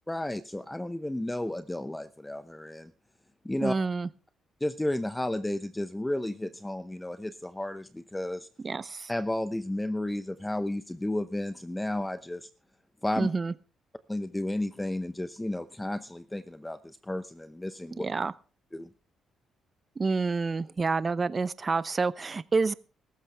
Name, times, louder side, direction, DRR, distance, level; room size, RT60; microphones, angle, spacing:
voice 1, 0.1-2.9 3.4-3.7 4.6-8.5 9.1-12.5 13.0-13.3 14.1-18.0 18.7-18.9, left 1 dB, 10° left, 0.8 m, -32 dB
voice 2, 3.6-4.1 8.6-9.1 13.2-13.5 18.0-18.3 20.0-22.7, right 4 dB, 30° right, 0.7 m, -28 dB
17.0 x 14.5 x 3.5 m
cardioid pair, 90°, 0 cm